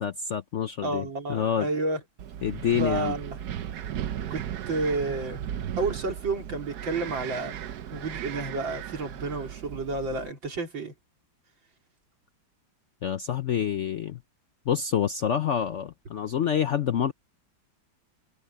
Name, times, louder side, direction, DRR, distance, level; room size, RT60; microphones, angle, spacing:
voice 1, 0.0-1.7 2.4-3.1 13.0-14.2 14.7-17.1, left 8 dB, 75° left, 0.6 m, -27 dB
voice 2, 0.8-2.0 2.8-3.4 4.3-5.4 5.8-7.6 7.9-10.9, right 3 dB, 85° right, 4.5 m, -30 dB
Wind, 2.2-10.3, right 10 dB, 65° right, 1.3 m, -36 dB
omnidirectional pair, 2.0 m